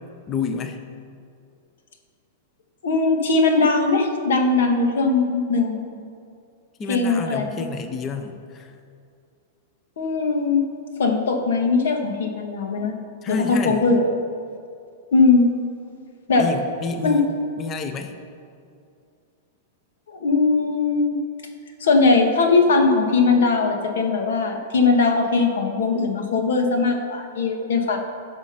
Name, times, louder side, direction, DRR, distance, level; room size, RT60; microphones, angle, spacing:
voice 1, 0.3-0.8 6.8-8.7 13.2-13.8 16.4-17.3 17.6-18.1, left 4 dB, 15° left, 7 dB, 0.6 m, -29 dB
voice 2, 2.8-5.8 6.9-7.4 10.0-10.6 11.0-13.0 13.3-14.1 15.1-15.5 16.3-16.5 17.0-17.2 20.1-21.2 21.8-28.0, left 4 dB, 85° left, 4 dB, 1.8 m, -20 dB
15.0 x 6.3 x 5.6 m, 2.4 s
supercardioid pair, 180°, 0 cm